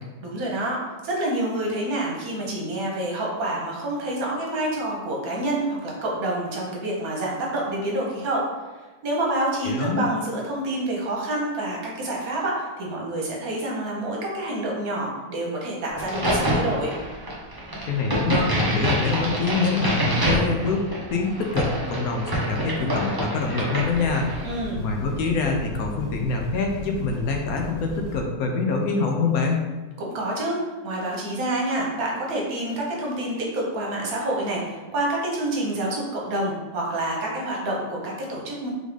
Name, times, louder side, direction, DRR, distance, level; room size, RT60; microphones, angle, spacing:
voice 1, 0.2-8.4 9.0-16.9 24.4-24.8 30.0-30.6 30.8-38.7, right 1 dB, 70° right, -2 dB, 1.3 m, -27 dB
voice 2, 9.6-10.1 17.9-20.8 21.1-24.3 24.8-29.6, left 4 dB, 75° left, 2 dB, 1.1 m, -25 dB
Crack, 16.0-24.5, right 1 dB, 25° right, 0.5 m, -26 dB
sound 1, 23.8-28.2, equal, 40° left, 1.4 m, -38 dB
3.8 x 3.6 x 3.1 m, 1.2 s
omnidirectional pair, 1.6 m